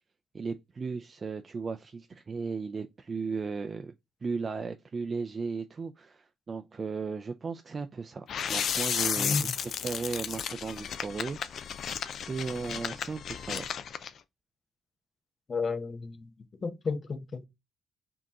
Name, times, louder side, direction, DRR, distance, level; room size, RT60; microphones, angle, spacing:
voice 1, 0.3-3.9 4.2-11.7 12.3-13.7, right 4 dB, 35° right, 0.4 m, -36 dB
sound 1, 8.3-14.1, left 8 dB, 60° left, 0.4 m, -33 dB
voice 2, 15.5-16.3 16.6-17.5, left 4 dB, 40° left, 0.8 m, -32 dB
5.1 x 2.9 x 3.6 m
cardioid pair, 90°, 0 cm